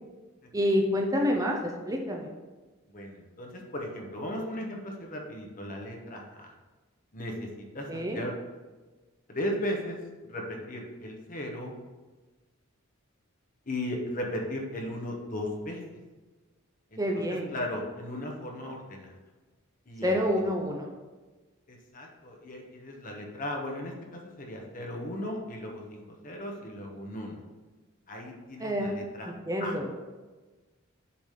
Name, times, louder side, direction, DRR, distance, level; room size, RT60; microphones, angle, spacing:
voice 1, 0.5-1.6 1.8-2.3 7.9-8.2 17.0-17.5 20.0-20.9 28.6-29.0 29.2-29.9, equal, 15° right, 1 dB, 0.6 m, -28 dB
voice 2, 2.9-6.5 7.1-8.3 9.3-10.0 10.3-11.7 13.7-15.8 16.9-17.0 17.5-19.1 19.9-20.5 21.7-27.4 28.1-29.3 29.6-29.7, left 1 dB, 40° left, 0 dB, 1.1 m, -36 dB
7.1 x 3.4 x 5.8 m, 1.3 s
head